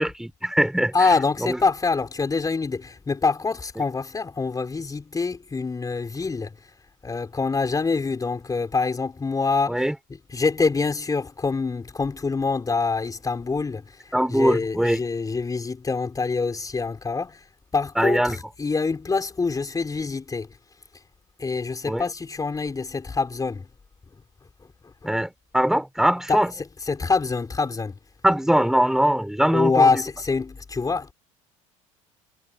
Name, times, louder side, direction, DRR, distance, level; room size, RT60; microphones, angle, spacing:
voice 1, 0.0-0.9 1.4-1.6 9.7-9.9 14.1-15.0 18.0-18.4 21.9-22.0 25.0-26.5 28.2-29.9, equal, 5° right, 6.0 m, -21 dB
voice 2, 0.9-6.5 7.0-9.9 10.3-17.5 17.7-20.5 21.4-23.7 25.0-25.1 26.3-26.4 26.8-28.0 29.5-31.1, left 4 dB, 20° left, 4.5 m, -25 dB
hypercardioid pair, 85°, 17 cm